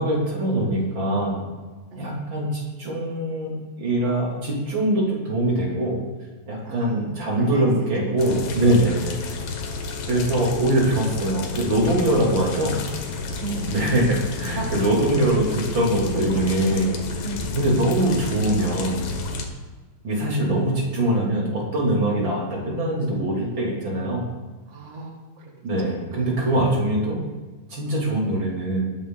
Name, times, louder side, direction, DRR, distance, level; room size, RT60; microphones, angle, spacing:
voice 1, 0.0-1.4 2.0-6.0 6.5-9.2 10.1-12.7 13.7-15.5 15.7-16.9 17.5-19.1 20.0-24.2 25.6-27.2 27.7-28.9, right 1 dB, 30° right, -3 dB, 3.3 m, -23 dB
voice 2, 1.9-2.2 6.6-8.6 10.0-10.1 10.7-11.4 12.1-12.9 13.4-13.7 14.5-14.7 16.0-16.4 17.2-17.6 24.7-26.9, right 2 dB, 55° right, -1 dB, 0.7 m, -36 dB
sound 1, 8.2-19.5, left 3 dB, 60° left, 2.7 m, -31 dB
20.0 x 8.7 x 4.0 m, 1.3 s
omnidirectional pair, 4.7 m